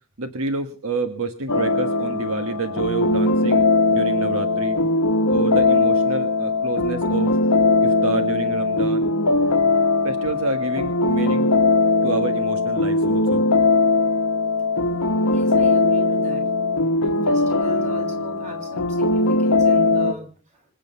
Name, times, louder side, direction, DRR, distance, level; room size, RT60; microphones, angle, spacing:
voice 1, 0.2-4.8 5.3-7.4 7.8-9.1 10.0-11.5 12.0-13.4, right 3 dB, 70° right, 8 dB, 1.4 m, -28 dB
sound 1, 1.5-20.1, left 3 dB, 85° left, 1.1 m, -20 dB
voice 2, 9.3-9.9 15.3-16.4 17.0-20.7, equal, 35° right, 2 dB, 7.3 m, -39 dB
26.0 x 9.0 x 5.5 m, 0.40 s
head